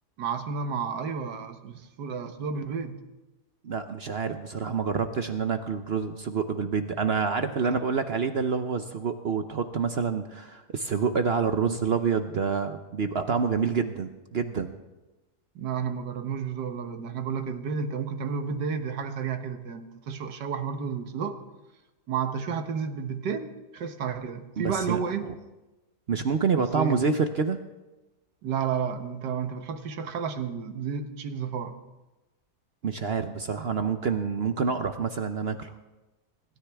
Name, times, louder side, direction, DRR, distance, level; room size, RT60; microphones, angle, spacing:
voice 1, 0.2-3.0 7.6-7.8 15.5-21.4 22.1-25.3 26.5-27.0 28.4-31.7, right 6 dB, 85° right, 8 dB, 1.7 m, -31 dB
voice 2, 3.6-14.7 24.6-25.3 26.1-27.6 32.8-35.7, right 5 dB, 55° right, 8 dB, 0.7 m, -27 dB
26.5 x 13.5 x 3.5 m, 1.1 s
omnidirectional pair, 1.8 m